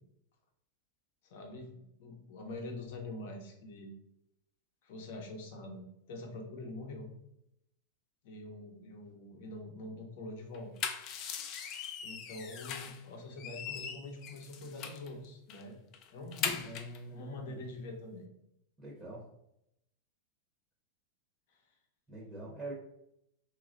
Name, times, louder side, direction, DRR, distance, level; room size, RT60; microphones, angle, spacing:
voice 1, 1.2-1.7 2.0-3.9 4.8-7.1 8.2-10.7 12.0-15.8 16.1-16.6 17.1-18.3 21.5-21.6, left 2 dB, 60° left, 3 dB, 0.8 m, -45 dB
sound 1, 10.5-13.0 13.4-15.1 15.5-15.6 15.9-17.0, left 7 dB, 35° left, 0.3 m, -39 dB
voice 2, 16.6-17.7 18.8-19.2 22.1-22.7, right 1 dB, 5° right, -3 dB, 0.7 m, -44 dB
3.1 x 2.3 x 3.7 m, 0.79 s
supercardioid pair, 155°, 0 cm